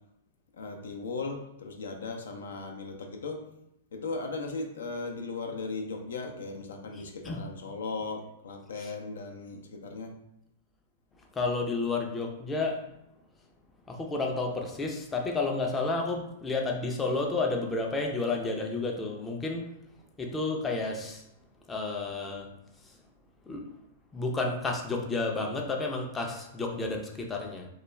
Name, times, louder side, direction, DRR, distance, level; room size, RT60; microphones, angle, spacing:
voice 1, 0.5-3.4 3.9-10.2, left 3 dB, 85° left, 3 dB, 0.4 m, -37 dB
voice 2, 6.9-7.4 8.8-8.9 11.3-12.8 13.9-19.7 20.2-21.2 21.7-22.5 23.5-23.7 24.1-27.7, left 3 dB, 15° left, 1 dB, 0.4 m, -31 dB
2.3 x 2.2 x 3.0 m, 0.82 s
hypercardioid pair, 125°, 0 cm